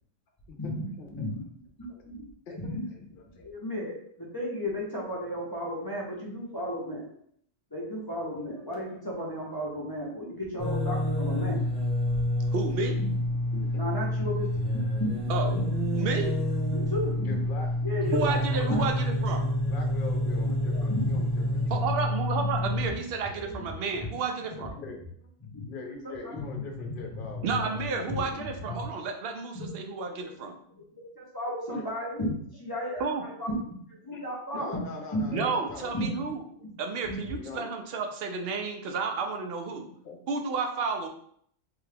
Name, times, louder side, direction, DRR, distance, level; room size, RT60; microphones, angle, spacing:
voice 1, 0.6-1.4 1.8-2.8 3.3-7.1 7.7-11.6 13.1-13.2 13.7-14.5 14.7-16.0 16.7-17.4 17.8-18.8 20.4-21.9 22.6-23.0 23.3-23.6 24.4-24.6 25.4-25.7 26.2-27.6 28.1-28.2 28.6-28.8 29.5-29.7 30.0-30.2 31.0-34.8 35.1-35.4 35.9-36.3 36.6-36.7 37.0-37.3, left 1 dB, 25° left, -4 dB, 0.6 m, -34 dB
voice 2, 2.5-3.0 3.3-3.5 13.3-13.8 14.1-14.3 17.2-17.7 18.2-18.8 19.6-21.9 24.5-25.3 25.7-28.4 31.7-31.8 34.1-34.2 34.5-36.1 37.4-37.7 39.7-40.3, left 3 dB, 50° left, 2 dB, 0.7 m, -43 dB
sound 1, 10.6-22.9, left 1 dB, ahead, 0.9 m, -28 dB
voice 3, 12.5-13.0 15.3-15.5 16.0-16.3 18.1-19.5 21.7-24.7 27.4-30.6 33.0-33.2 35.3-36.4 36.8-39.9 40.3-41.1, right 4 dB, 60° right, 4 dB, 0.6 m, -31 dB
3.5 x 2.3 x 3.3 m, 0.65 s
omnidirectional pair, 1.3 m